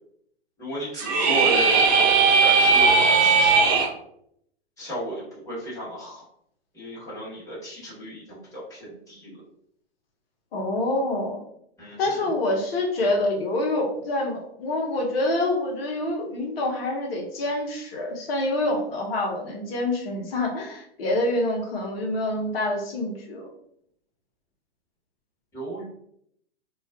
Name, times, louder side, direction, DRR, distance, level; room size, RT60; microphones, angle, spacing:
voice 1, 0.6-3.9 4.8-6.2 6.7-9.4 11.8-12.3 25.5-25.8, right 1 dB, 10° left, -9 dB, 1.2 m, -34 dB
sound 1, 0.9-3.9, right 4 dB, 55° right, 0.7 m, -18 dB
voice 2, 10.5-11.4 12.0-23.5, left 1 dB, 65° left, 0 dB, 0.9 m, -26 dB
2.4 x 2.3 x 2.4 m, 0.70 s
hypercardioid pair, 110°, 32 cm